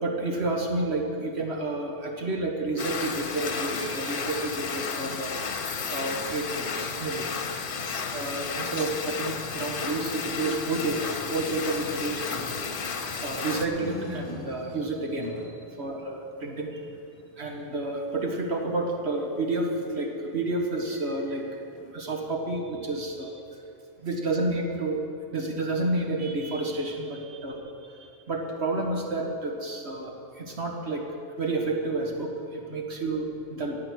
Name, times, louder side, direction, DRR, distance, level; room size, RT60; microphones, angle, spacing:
voice 1, 0.0-5.3 5.9-7.4 8.1-12.4 13.2-16.8 17.4-21.6 21.9-23.4 24.0-31.0 31.4-33.8, right 2 dB, 80° right, 1 dB, 1.8 m, -30 dB
sound 1, 2.8-13.7, left 5 dB, 60° left, 1.0 m, -33 dB
sound 2, 6.6-8.3 9.2-21.9, left 2 dB, 30° left, 0.9 m, -47 dB
sound 3, 9.8-12.0, equal, 25° right, 2.4 m, -41 dB
11.0 x 8.6 x 8.5 m, 2.5 s
omnidirectional pair, 1.1 m